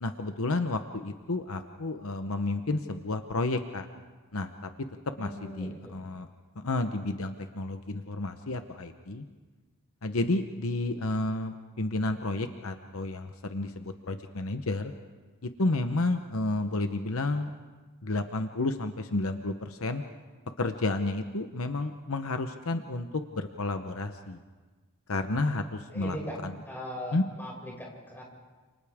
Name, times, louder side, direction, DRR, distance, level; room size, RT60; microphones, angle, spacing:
voice 1, 0.0-3.9 4.3-4.7 5.2-6.3 6.6-9.2 10.0-14.9 15.4-17.5 18.0-20.0 20.6-24.4 25.1-26.2 26.4-26.5 27.1-27.2, left 2 dB, 65° left, 7 dB, 1.0 m, -31 dB
voice 2, 5.2-6.0 25.5-25.6 25.9-26.4 26.7-28.2, equal, 10° left, -3 dB, 6.1 m, -39 dB
29.5 x 28.5 x 3.6 m, 1.3 s
head